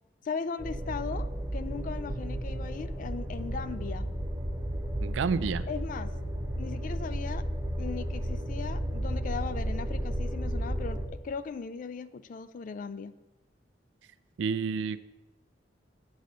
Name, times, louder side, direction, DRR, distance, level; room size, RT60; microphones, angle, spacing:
voice 1, 0.2-4.1 5.7-6.1 6.6-7.5 7.8-13.2, left 5 dB, 45° left, 15 dB, 0.3 m, -38 dB
sound 1, 0.6-11.0, equal, 15° right, 0.8 m, -33 dB
voice 2, 5.0-5.7 14.4-15.0, right 5 dB, 80° right, 15 dB, 0.4 m, -29 dB
8.0 x 3.9 x 6.4 m, 1.0 s
head